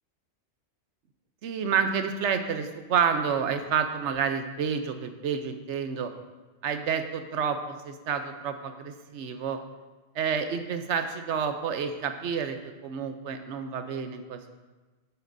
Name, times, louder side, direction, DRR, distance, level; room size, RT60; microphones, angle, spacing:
voice 1, 1.4-6.1 6.6-9.6 10.1-14.5, right 7 dB, 90° right, 7 dB, 1.0 m, -29 dB
9.6 x 8.8 x 2.6 m, 1.2 s
omnidirectional pair, 1.1 m